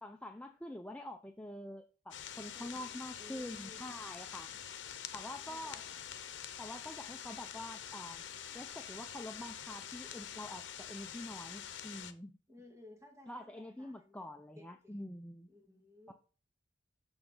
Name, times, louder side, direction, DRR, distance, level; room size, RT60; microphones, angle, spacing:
voice 1, 0.0-4.5 5.1-5.8 6.6-8.2 8.5-12.4 13.3-15.5 16.1-16.2, left 1 dB, 5° left, 5 dB, 0.5 m, -46 dB
sound 1, 2.1-12.1, left 9 dB, 85° left, 0.8 m, -46 dB
voice 2, 2.5-3.8 5.5-6.1 12.5-14.2 14.5-14.9 15.5-16.1, left 2 dB, 15° right, 0 dB, 2.7 m, -58 dB
7.1 x 6.6 x 3.8 m, 0.36 s
head